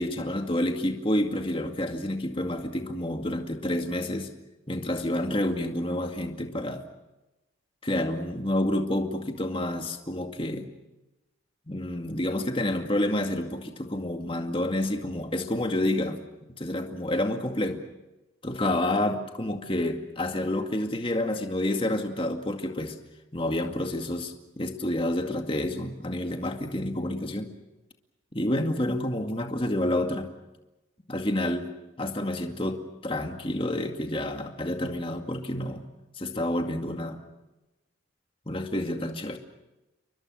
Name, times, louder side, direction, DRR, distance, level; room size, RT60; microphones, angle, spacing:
voice 1, 0.0-4.3 4.7-6.8 7.8-10.7 11.7-16.2 16.6-17.8 18.4-23.0 23.3-27.5 28.3-30.3 31.1-31.7 32.0-35.9 36.2-37.2 38.5-39.4, left 1 dB, 25° left, 4 dB, 2.2 m, -29 dB
29.5 x 23.5 x 6.4 m, 1.0 s
head